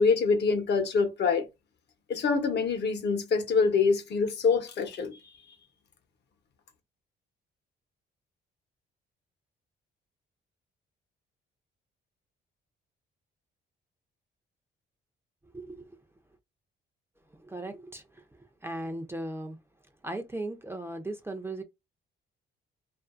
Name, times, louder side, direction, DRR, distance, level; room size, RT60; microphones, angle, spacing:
voice 1, 0.0-1.5 2.1-5.2, left 5 dB, 60° left, 0.9 m, -25 dB
voice 2, 15.5-15.9 17.5-18.0 18.6-19.6 20.0-21.6, right 1 dB, 10° right, 0.5 m, -37 dB
2.5 x 2.5 x 2.4 m
cardioid pair, 90°, 20 cm